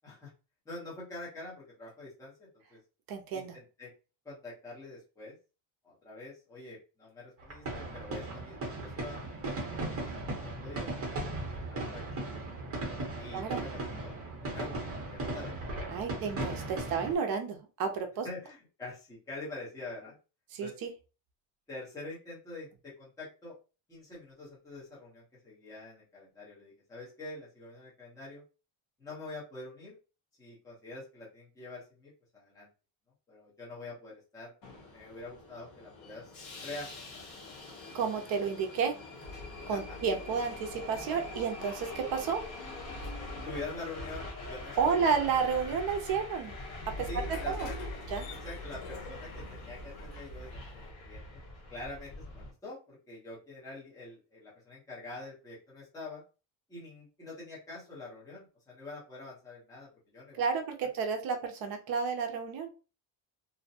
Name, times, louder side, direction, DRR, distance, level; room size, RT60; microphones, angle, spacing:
voice 1, 0.7-2.8 3.3-3.9 4.2-5.3 5.8-9.2 9.8-10.9 11.7-12.0 13.2-14.1 14.4-14.7 15.1-15.6 15.9-16.2 18.2-20.2 20.6-20.7 21.7-23.5 23.9-28.4 29.0-30.0 30.4-32.7 33.3-34.5 34.9-36.9 37.1-37.2 39.7-40.0 43.2-45.1 47.1-47.7 48.4-51.2 51.7-56.2 56.7-60.4, left 2 dB, 5° left, -6 dB, 0.7 m, -45 dB
voice 2, 3.1-3.5 13.3-13.6 15.9-18.3 20.5-20.9 37.9-38.9 39.7-42.4 44.8-46.5 47.0-47.7 48.1-48.3 60.3-62.7, right 6 dB, 50° right, 5 dB, 0.5 m, -31 dB
sound 1, 7.4-17.1, right 2 dB, 25° right, 0.9 m, -37 dB
Subway metro underground, 34.6-52.5, left 2 dB, 45° left, 0.8 m, -45 dB
sound 2, 39.2-50.9, left 2 dB, 75° left, 0.8 m, -45 dB
2.5 x 2.1 x 2.7 m, 0.32 s
cardioid pair, 175°, 49 cm